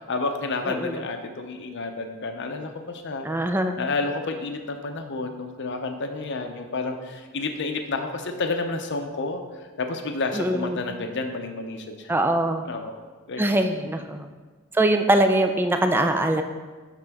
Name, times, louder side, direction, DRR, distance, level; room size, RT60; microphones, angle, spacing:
voice 1, 0.0-3.3 3.8-12.2 12.6-13.0 13.3-13.6, left 3 dB, 55° left, 5 dB, 0.7 m, -30 dB
voice 2, 3.2-3.8 10.3-10.8 12.1-12.6 13.4-14.3 14.7-16.4, right 1 dB, 10° right, 6 dB, 0.3 m, -22 dB
11.0 x 3.8 x 3.5 m, 1.4 s
head